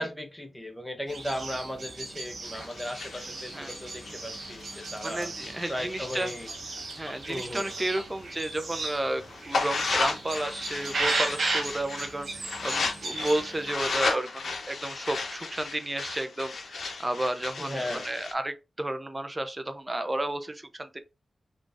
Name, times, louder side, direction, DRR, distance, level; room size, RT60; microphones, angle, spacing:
voice 1, 0.0-5.3 5.7-6.5 7.3-7.7 17.6-18.1, equal, 10° left, 0.7 m, -36 dB
sound 1, 1.1-13.7, right 3 dB, 80° right, 1.1 m, -36 dB
sound 2, 2.4-8.0 8.4-18.3, left 4 dB, 85° left, 0.6 m, -35 dB
voice 2, 5.0-6.3 7.0-21.0, right 1 dB, 20° right, 0.5 m, -32 dB
3.8 x 2.4 x 2.4 m
wide cardioid pair, 80°, 0 cm